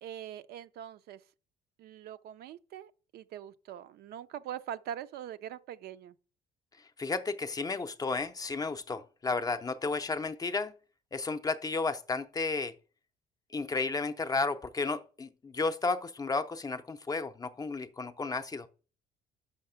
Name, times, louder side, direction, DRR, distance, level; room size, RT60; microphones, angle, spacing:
voice 1, 0.0-1.2 1.8-6.2, right 10 dB, 70° right, 0.5 m, -43 dB
voice 2, 7.0-10.7 11.1-12.7 13.5-18.7, left 3 dB, 20° left, 0.5 m, -33 dB
5.7 x 5.7 x 5.6 m
cardioid pair, 110°, 17 cm